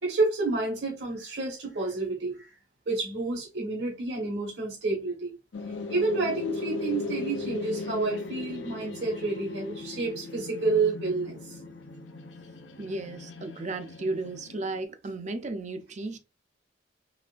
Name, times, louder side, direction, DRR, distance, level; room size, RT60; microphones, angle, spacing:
voice 1, 0.0-2.5 2.9-5.3 5.9-11.5, right 3 dB, 70° right, 1.4 m, -29 dB
sound 1, 5.5-14.8, left 3 dB, 85° left, 0.6 m, -38 dB
voice 2, 12.8-16.2, right 2 dB, 40° right, 0.6 m, -34 dB
4.1 x 3.2 x 2.5 m
head